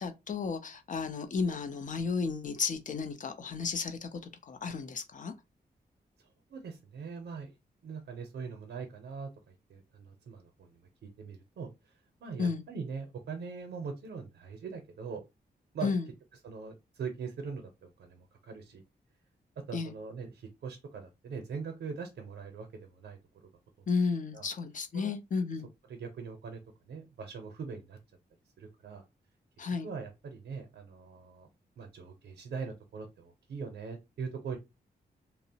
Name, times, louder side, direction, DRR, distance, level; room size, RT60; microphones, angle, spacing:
voice 1, 0.0-5.3 12.4-12.6 15.8-16.1 19.7-19.9 23.9-25.7 29.6-29.9, left 5 dB, 50° left, 0.5 m, -33 dB
voice 2, 6.2-7.6 7.8-11.9 12.2-15.2 15.7-15.9 16.4-18.8 19.7-23.2 23.8-23.9 24.3-24.5 24.9-25.1 25.9-26.6 26.9-28.0 28.6-29.0 29.8-31.5 31.8-34.6, right 5 dB, 85° right, 0.6 m, -42 dB
2.8 x 2.0 x 2.7 m
wide cardioid pair, 100°, 17 cm